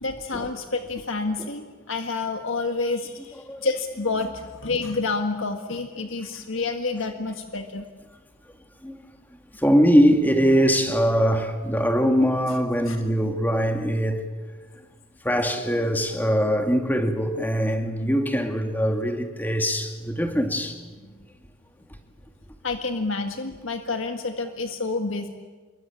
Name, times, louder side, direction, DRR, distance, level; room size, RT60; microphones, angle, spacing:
voice 1, 0.0-7.9 12.9-13.0 21.0-21.1 22.6-25.3, left 3 dB, 70° left, 1.6 m, -29 dB
voice 2, 9.6-14.2 15.2-20.8, equal, 10° left, 2.1 m, -22 dB
27.5 x 23.0 x 8.6 m
head